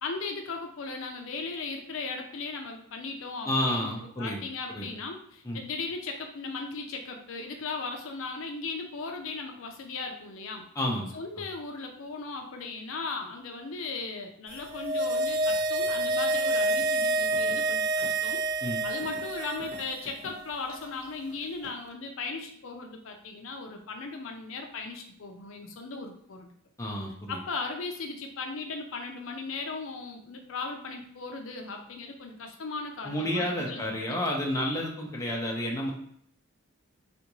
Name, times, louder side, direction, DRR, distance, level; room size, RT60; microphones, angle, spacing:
voice 1, 0.0-10.7 11.1-26.5 27.3-33.8, left 4 dB, 70° left, 3 dB, 0.5 m, -37 dB
voice 2, 3.4-4.4 4.7-4.9 5.4-5.6 10.8-11.2 18.6-18.8 26.8-27.4 33.0-35.9, left 1 dB, 15° left, -1 dB, 0.6 m, -30 dB
sound 1, 14.6-20.1 20.3-20.4, right 2 dB, 50° right, 0.4 m, -28 dB
sound 2, 16.8-16.9 17.3-17.6 18.0-18.1 19.0-19.2 19.6-20.3 20.7-21.8, left 1 dB, 50° left, 1.0 m, -46 dB
3.4 x 2.5 x 3.0 m, 0.67 s
head